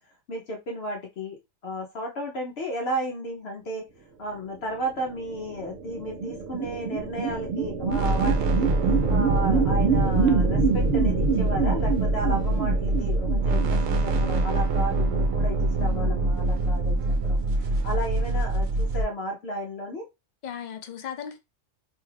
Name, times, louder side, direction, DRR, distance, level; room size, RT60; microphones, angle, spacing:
voice 1, 0.3-1.4 1.6-3.8 4.2-8.7 9.1-17.4 17.8-20.0, right 1 dB, 60° left, 0.8 m, -33 dB
sound 1, 5.1-14.8, right 5 dB, 60° right, 0.7 m, -27 dB
sound 2, 7.9-19.0, right 2 dB, 80° right, 1.0 m, -24 dB
voice 2, 15.8-16.1 17.6-17.7 20.4-21.4, left 8 dB, 85° left, 0.3 m, -37 dB
2.7 x 2.3 x 3.1 m
omnidirectional pair, 1.4 m